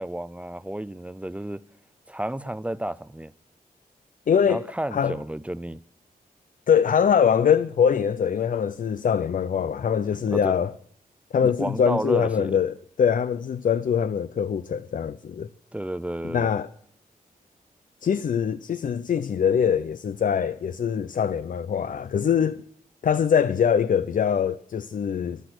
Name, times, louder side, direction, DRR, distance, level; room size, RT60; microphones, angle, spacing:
voice 1, 0.0-1.6 2.1-3.3 4.5-5.8 10.3-10.5 11.4-12.6 15.7-16.5, right 1 dB, 10° right, 0.5 m, -31 dB
voice 2, 4.3-4.6 4.9-5.2 6.7-10.7 11.3-15.5 16.3-16.7 18.0-22.6 23.0-25.4, left 7 dB, 60° left, 0.5 m, -23 dB
14.0 x 12.0 x 6.2 m
wide cardioid pair, 125°, 15 cm